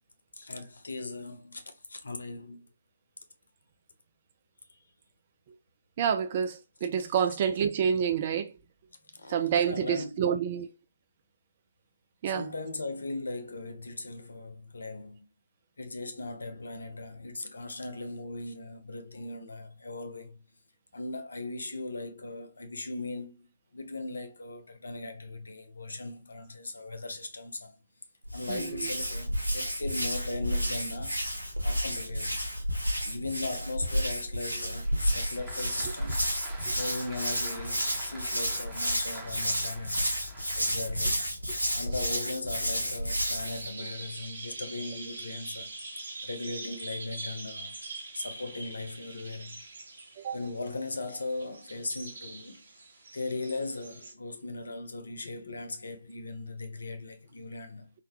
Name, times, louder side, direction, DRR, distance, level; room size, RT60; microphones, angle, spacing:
voice 1, 0.4-2.7 4.7-4.8 9.1-10.2 12.3-15.3 15.8-20.4 20.9-23.5 23.7-27.7 28.3-31.2 31.6-32.5 33.0-36.2 36.7-40.1 40.6-41.3 41.7-45.7 46.2-47.8 48.1-49.6 50.3-52.6 53.1-57.9, left 2 dB, 65° left, 0.6 m, -38 dB
voice 2, 6.0-8.5 9.3-10.7 12.2-12.5 28.5-28.9 36.7-36.8 50.2-50.4, right 8 dB, 30° right, 0.3 m, -28 dB
Hands, 28.3-43.7, equal, 90° left, 1.0 m, -31 dB
Applause, 34.8-41.2, right 2 dB, 5° right, 0.8 m, -48 dB
sound 1, 43.4-54.1, right 2 dB, 55° right, 1.1 m, -43 dB
3.6 x 2.2 x 2.8 m
figure-of-eight pair, 140°, 0 cm